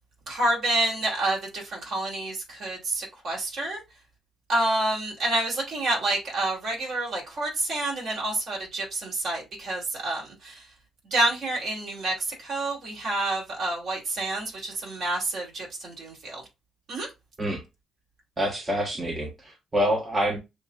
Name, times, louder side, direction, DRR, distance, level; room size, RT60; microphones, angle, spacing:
voice 1, 0.3-3.8 4.5-10.7 11.1-16.4 16.9-17.1, right 2 dB, 60° right, 2.8 m, -28 dB
voice 2, 18.4-20.4, equal, 30° right, 1.2 m, -26 dB
6.6 x 2.7 x 2.4 m
cardioid pair, 90°, 0 cm